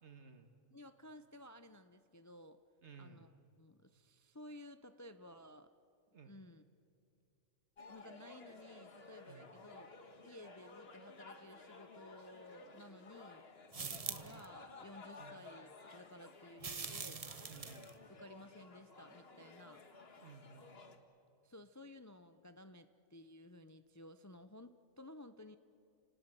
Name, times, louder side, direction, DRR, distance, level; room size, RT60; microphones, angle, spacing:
voice 1, 0.0-0.5 2.8-3.3 6.1-6.4 9.3-9.5 13.8-14.1 15.2-15.4 17.5-17.9 20.2-20.7, right 5 dB, 60° right, 7 dB, 1.9 m, -57 dB
voice 2, 0.7-2.6 3.0-5.7 6.2-6.6 7.9-9.9 10.2-13.5 13.8-17.3 18.2-19.8 21.4-25.6, left 1 dB, 20° left, 10 dB, 0.5 m, -56 dB
sound 1, 7.8-21.0, left 3 dB, 55° left, 1.7 m, -56 dB
sound 2, 13.7-14.4 16.6-17.9, right 5 dB, 35° right, 0.8 m, -44 dB
29.5 x 19.0 x 9.1 m, 2.5 s
omnidirectional pair, 1.3 m